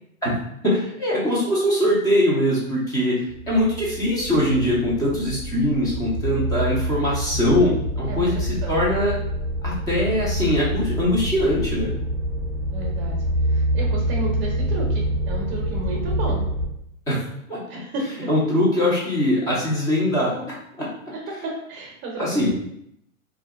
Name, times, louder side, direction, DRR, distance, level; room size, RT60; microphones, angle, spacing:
voice 1, 0.6-3.2 3.5-9.2 9.6-11.9 17.1-17.2 17.5-17.6 18.3-20.3 20.8-20.9 22.2-22.5, left 1 dB, 10° left, -7 dB, 0.6 m, -22 dB
sound 1, 3.3-16.7, equal, 55° left, 1.3 m, -26 dB
voice 2, 8.1-8.8 12.7-13.2 13.5-16.4 17.7-18.3 21.2-22.5, right 2 dB, 25° right, -1 dB, 0.8 m, -32 dB
2.7 x 2.3 x 3.4 m, 0.74 s
hypercardioid pair, 140°, 42 cm